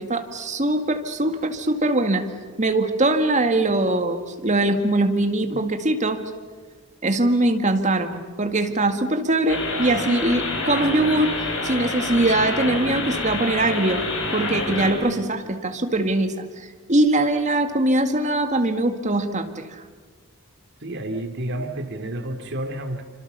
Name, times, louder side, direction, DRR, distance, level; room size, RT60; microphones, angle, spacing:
voice 1, 0.0-2.3 2.6-6.2 7.0-11.3 11.6-14.0 14.3-19.8, right 2 dB, 35° right, 6 dB, 2.0 m, -22 dB
sound 1, 9.5-14.9, left 2 dB, 65° left, 7.0 m, -27 dB
voice 2, 20.8-23.0, right 1 dB, 55° right, 6 dB, 2.6 m, -30 dB
27.5 x 26.0 x 6.9 m, 1.5 s
head